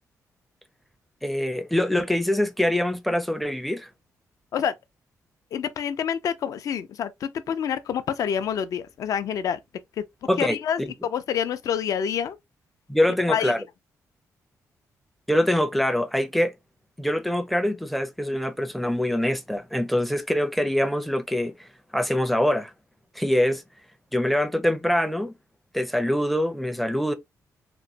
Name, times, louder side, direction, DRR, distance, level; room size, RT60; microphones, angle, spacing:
voice 1, 1.2-3.9 10.3-10.9 12.9-13.6 15.3-16.5 17.0-22.7 23.2-23.6 24.1-25.3 25.7-27.1, left 1 dB, ahead, 0.4 m, -24 dB
voice 2, 5.5-9.6 10.0-10.1 10.4-12.4 13.3-13.5, left 8 dB, 65° left, 0.4 m, -27 dB
3.0 x 2.1 x 2.6 m
cardioid pair, 105°, 6 cm